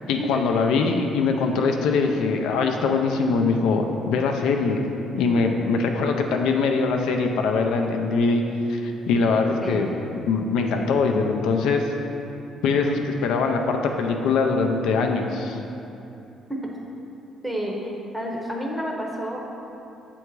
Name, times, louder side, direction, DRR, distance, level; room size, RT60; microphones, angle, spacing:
voice 1, 0.1-4.8 5.1-8.4 8.7-11.9 12.6-15.6, left 4 dB, 85° left, 3 dB, 0.5 m, -22 dB
voice 2, 17.4-19.4, equal, ahead, -2 dB, 0.7 m, -30 dB
7.8 x 3.5 x 4.6 m, 2.8 s
cardioid pair, 170°, 0 cm